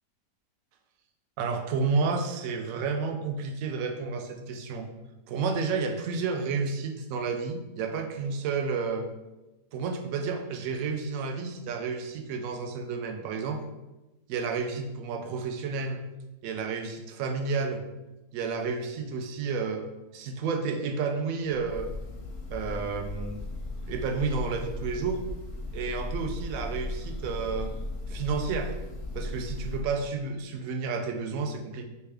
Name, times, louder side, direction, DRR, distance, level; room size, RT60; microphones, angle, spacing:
voice 1, 1.4-4.9 5.3-9.1 9.7-13.6 14.3-16.0 16.4-17.8 18.3-19.8 20.1-21.9 22.5-23.4 23.9-25.2 25.7-27.7 28.1-28.8 29.1-31.8, right 4 dB, 70° right, 4 dB, 0.8 m, -31 dB
Breathing / Bird, 21.5-30.0, left 2 dB, 60° left, 0.6 m, -36 dB
3.4 x 3.3 x 3.4 m, 1.0 s
omnidirectional pair, 1.8 m